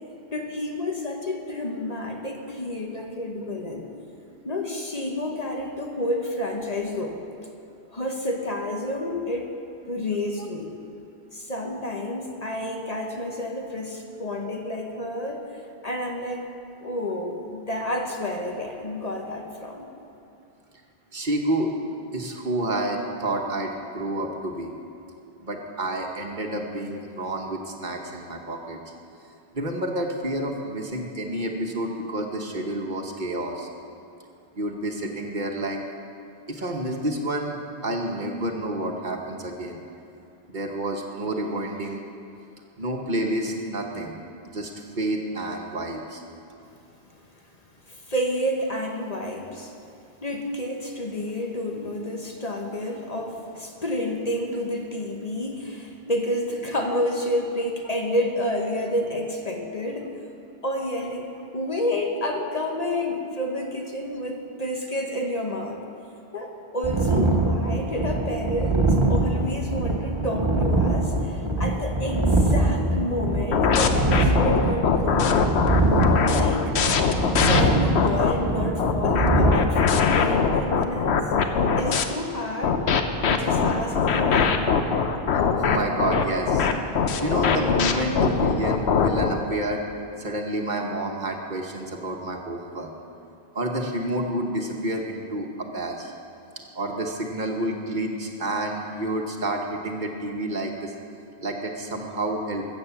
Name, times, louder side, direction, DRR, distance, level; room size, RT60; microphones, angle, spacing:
voice 1, 0.3-3.9 4.4-7.2 7.9-9.5 9.9-10.7 11.3-15.4 15.8-16.5 16.8-19.9 47.9-49.7 50.2-60.1 60.6-65.8 66.3-75.4 76.3-76.7 77.4-81.1 81.8-82.8 83.2-84.7, left 1 dB, 40° left, 2 dB, 1.2 m, -29 dB
voice 2, 21.1-21.7 22.1-24.7 25.4-28.8 29.5-33.7 34.5-35.8 36.5-37.6 37.8-39.8 40.5-42.0 42.8-44.2 44.4-44.7 45.0-46.2 85.6-86.7 87.2-89.8 90.2-92.9 93.5-96.1 96.7-100.9 101.4-102.7, right 1 dB, 50° right, 2 dB, 1.3 m, -29 dB
sound 1, 66.8-79.6, right 2 dB, 25° right, 1.4 m, -23 dB
sound 2, 73.5-78.3 78.8-82.0 82.6-89.3, left 6 dB, 85° left, 1.1 m, -21 dB
14.0 x 8.2 x 7.1 m, 2.7 s
omnidirectional pair, 1.1 m